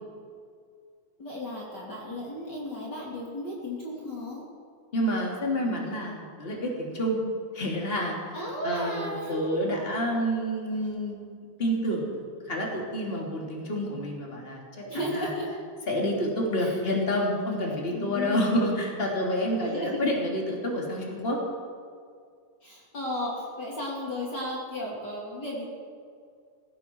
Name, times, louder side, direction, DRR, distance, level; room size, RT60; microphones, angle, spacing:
voice 1, 1.2-4.4 8.3-9.4 14.7-15.5 16.5-16.8 17.9-18.6 19.6-20.0 22.6-25.6, left 1 dB, 35° left, -4 dB, 3.1 m, -34 dB
voice 2, 4.9-7.2 7.5-8.4 8.6-11.2 11.6-14.6 15.1-15.3 15.9-21.4, equal, 20° left, -2 dB, 3.0 m, -28 dB
19.0 x 16.0 x 4.7 m, 2.2 s
omnidirectional pair, 3.8 m